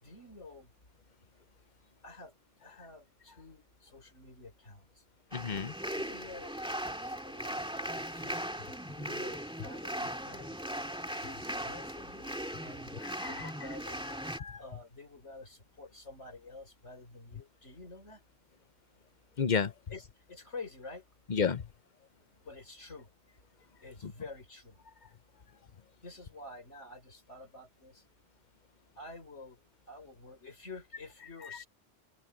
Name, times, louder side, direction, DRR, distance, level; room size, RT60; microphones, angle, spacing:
voice 1, 0.0-0.7 2.0-2.3 2.6-5.0 5.9-6.6 7.0-8.4 8.9-10.7 11.2-12.3 12.6-12.9 13.3-14.0 14.6-18.2 19.9-21.0 22.4-23.1 23.8-24.8 26.0-28.0 29.0-29.6 29.9-31.7, left 3 dB, 80° left, 5.0 m, -49 dB
voice 2, 5.3-5.7 13.0-13.5 14.0-14.6 19.4-19.7 21.3-21.7 24.0-24.1 31.5-31.6, left 6 dB, 45° left, 1.0 m, -32 dB
sound 1, 5.3-14.4, equal, 5° right, 2.2 m, -38 dB
open air
omnidirectional pair, 1.2 m